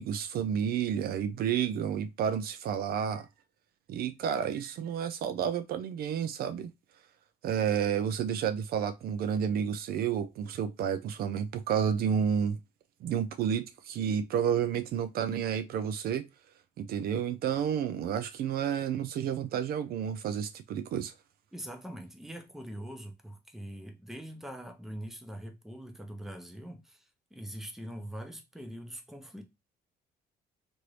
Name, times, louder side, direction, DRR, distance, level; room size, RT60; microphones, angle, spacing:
voice 1, 0.0-3.3 3.9-6.7 7.4-12.6 13.0-16.3 16.8-21.1, right 8 dB, 65° right, 0.4 m, -30 dB
voice 2, 21.5-29.5, equal, ahead, 0.6 m, -43 dB
2.9 x 2.6 x 3.1 m
cardioid pair, 125°, 17 cm